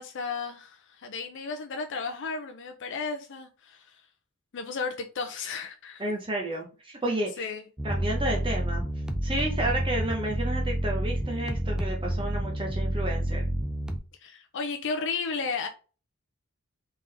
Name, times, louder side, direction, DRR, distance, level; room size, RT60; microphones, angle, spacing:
voice 1, 0.0-4.0 4.5-6.0 7.4-7.6 9.6-9.7 14.2-15.7, left 4 dB, 60° left, 0.5 m, -34 dB
voice 2, 6.0-7.4 7.8-8.8 9.2-13.4, right 1 dB, 25° right, 0.8 m, -31 dB
sound 1, 7.8-14.0, equal, 5° right, 0.4 m, -29 dB
3.7 x 3.6 x 3.3 m
head